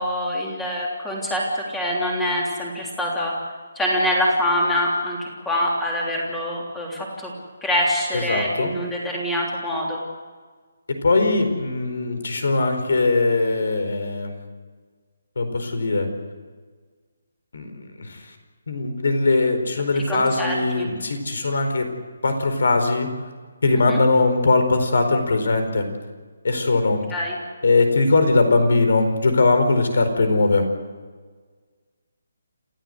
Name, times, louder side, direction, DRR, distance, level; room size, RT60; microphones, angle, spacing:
voice 1, 0.0-3.3 3.7-7.3 7.6-10.0 20.1-20.9 23.9-24.0 27.1-27.4, left 1 dB, 5° left, -3 dB, 3.3 m, -25 dB
voice 2, 8.1-8.7 10.9-14.4 15.4-16.1 17.5-18.3 18.7-21.9 22.2-23.1 23.6-25.9 26.4-27.0 27.6-30.7, left 3 dB, 65° left, 7 dB, 4.6 m, -20 dB
28.0 x 15.0 x 8.1 m, 1.5 s
hypercardioid pair, 175°, 0 cm